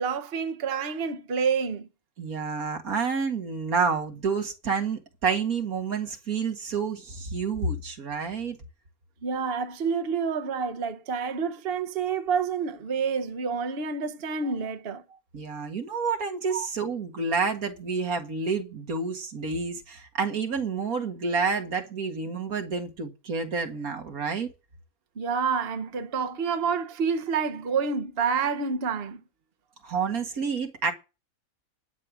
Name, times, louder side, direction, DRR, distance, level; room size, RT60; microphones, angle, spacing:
voice 1, 0.0-1.9 9.2-15.2 16.5-16.7 25.2-29.2, right 5 dB, 45° right, 1.2 m, -28 dB
voice 2, 2.2-8.6 15.3-24.5 29.8-30.9, right 5 dB, 80° right, 2.3 m, -29 dB
12.0 x 8.7 x 6.2 m
omnidirectional pair, 1.5 m